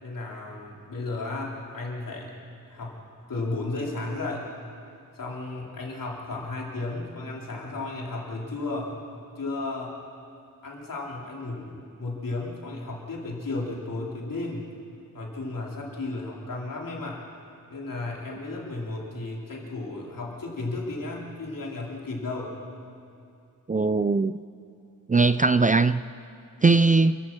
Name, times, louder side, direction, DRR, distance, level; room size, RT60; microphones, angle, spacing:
voice 1, 0.0-2.3 2.7-4.5 5.1-8.9 9.4-9.9 10.6-14.7 15.1-17.2 17.7-22.5, left 2 dB, 75° left, -3 dB, 3.9 m, -34 dB
voice 2, 23.7-24.4 25.1-26.0 26.6-27.2, right 3 dB, 25° right, 13 dB, 0.4 m, -20 dB
28.5 x 15.0 x 6.1 m, 2.5 s
wide cardioid pair, 110°, 33 cm